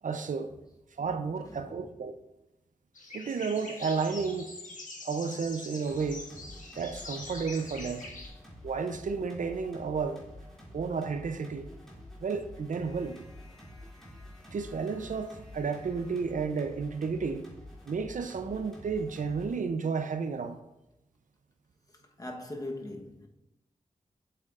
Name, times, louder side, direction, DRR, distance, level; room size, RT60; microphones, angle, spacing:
voice 1, 0.0-0.5 1.0-2.2 3.1-4.5 5.0-8.1 8.6-10.2 10.7-11.7 12.2-13.2 14.5-17.5 17.9-20.6, right 5 dB, 70° right, 0.5 m, -32 dB
voice 2, 1.4-2.0 22.2-23.3, left 1 dB, 25° left, 1.1 m, -41 dB
sound 1, 2.9-8.3, left 3 dB, 70° left, 1.5 m, -44 dB
sound 2, 5.9-19.6, left 1 dB, 5° left, 2.6 m, -49 dB
7.9 x 7.7 x 2.5 m
cardioid pair, 60°, 14 cm